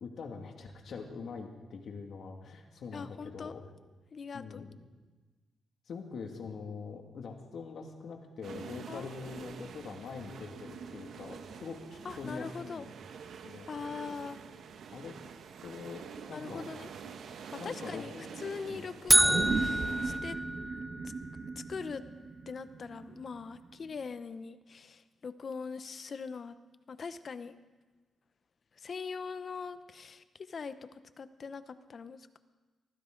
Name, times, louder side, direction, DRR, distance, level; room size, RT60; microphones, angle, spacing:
voice 1, 0.0-3.6 4.3-4.8 5.9-12.9 13.4-13.7 14.9-15.1 15.6-16.7 17.6-18.8, left 5 dB, 65° left, 3 dB, 2.2 m, -44 dB
voice 2, 2.9-3.5 4.1-4.6 8.9-9.3 12.0-12.9 13.7-14.4 16.3-16.9 17.5-20.4 21.0-21.1 21.6-22.0 22.5-26.6 26.9-27.6 28.8-32.4, left 5 dB, 45° left, 12 dB, 0.8 m, -42 dB
sound 1, 8.4-20.2, right 6 dB, 70° right, 1.0 m, -47 dB
sound 2, 19.1-21.2, right 1 dB, 10° right, 0.5 m, -27 dB
sound 3, 19.1-23.7 24.0-24.1, right 4 dB, 45° right, 1.0 m, -37 dB
23.5 x 15.5 x 3.9 m, 1.2 s
cardioid pair, 125°, 0 cm